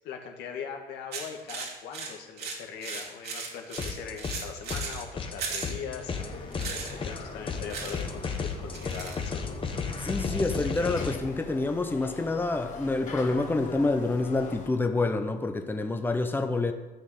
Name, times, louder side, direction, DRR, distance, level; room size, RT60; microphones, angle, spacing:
voice 1, 0.0-6.5 6.8-9.5, left 7 dB, 90° left, 3 dB, 2.0 m, -41 dB
sound 1, 1.1-5.0 5.4-5.7 6.5-6.9 7.7-8.0 8.3-8.4 8.7-9.2, right 5 dB, 70° right, 3.0 m, -37 dB
sound 2, 3.8-4.4 4.7-11.2, left 5 dB, 30° left, 1.6 m, -34 dB
sound 3, 6.0-14.7, left 4 dB, 50° left, 2.4 m, -43 dB
voice 2, 10.0-16.7, left 2 dB, 10° left, 6 dB, 1.1 m, -27 dB
13.0 x 6.4 x 8.2 m, 1.1 s
cardioid pair, 110°, 17 cm